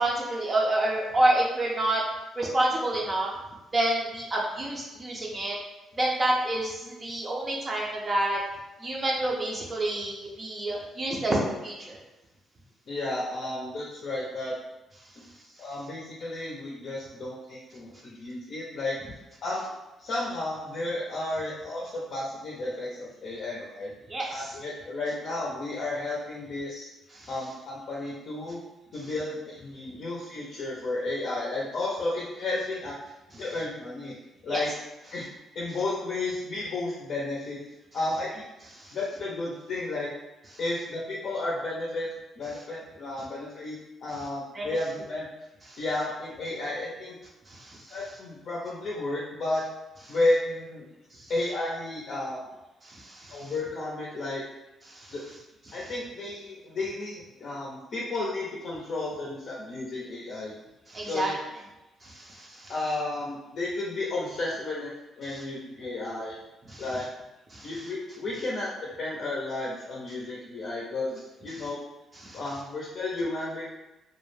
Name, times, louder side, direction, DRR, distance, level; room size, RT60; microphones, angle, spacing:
voice 1, 0.0-2.0 2.3-3.3 3.7-5.6 5.9-8.4 8.8-12.0 24.1-24.6 27.1-27.3 34.5-34.6 38.8-39.0 44.5-44.7 45.7-45.8 47.5-48.0 51.1-51.3 52.8-53.5 54.9-55.1 55.7-55.8 60.9-61.3 62.0-62.7 65.3-65.4 66.7-66.8 67.5-67.7 71.5-71.6 72.2-72.4, right 1 dB, 30° right, -2 dB, 0.5 m, -28 dB
voice 2, 12.9-14.5 15.6-19.7 20.0-23.9 24.3-26.9 27.3-28.6 28.9-33.0 33.4-34.2 34.4-34.7 35.1-35.3 35.5-37.6 37.9-38.4 38.9-40.1 40.6-42.1 42.4-45.3 45.8-47.2 47.9-49.6 50.1-50.9 51.3-52.5 53.3-54.4 55.1-55.2 55.7-60.5 61.0-61.4 62.7-64.9 65.2-66.4 66.8-67.1 67.6-71.8 72.3-73.7, left 2 dB, 60° left, -4 dB, 0.5 m, -32 dB
2.2 x 2.0 x 3.1 m, 1.0 s
cardioid pair, 90°, 0 cm